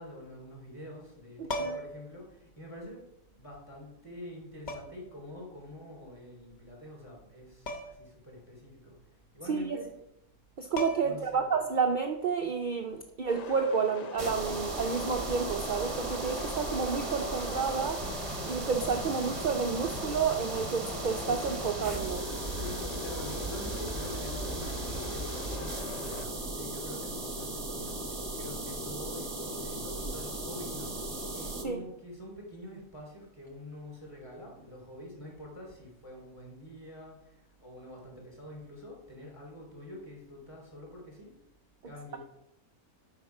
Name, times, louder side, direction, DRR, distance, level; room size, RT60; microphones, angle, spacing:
voice 1, 0.0-3.0 3.3-10.0 11.0-11.5 22.5-41.3 41.8-42.2, left 1 dB, 15° left, -3 dB, 3.4 m, -46 dB
sound 1, 1.4-2.1 3.4-3.5 4.7-5.1 7.7-8.1 8.4-8.5 10.3-10.4 10.8-11.3 13.3-13.5, left 1 dB, 40° left, 0.9 m, -37 dB
voice 2, 1.4-1.8 9.5-9.8 10.6-18.0 18.4-22.3 31.6-31.8, right 5 dB, 55° right, 4 dB, 0.5 m, -30 dB
sound 2, 13.3-26.3, left 4 dB, 65° left, 0.4 m, -43 dB
sound 3, 14.2-31.6, right 2 dB, 25° right, 0.9 m, -36 dB
8.5 x 5.8 x 4.8 m, 0.81 s
omnidirectional pair, 1.5 m